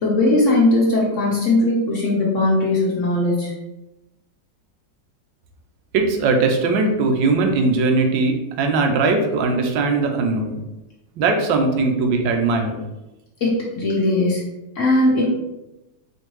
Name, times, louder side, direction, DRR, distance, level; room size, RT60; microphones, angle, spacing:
voice 1, 0.0-3.5 13.4-14.4 14.7-15.3, left 2 dB, 55° left, -4 dB, 0.9 m, -19 dB
voice 2, 5.9-10.6 11.2-12.8, right 3 dB, 85° right, 3 dB, 1.3 m, -19 dB
4.4 x 2.6 x 3.1 m, 0.98 s
omnidirectional pair, 2.0 m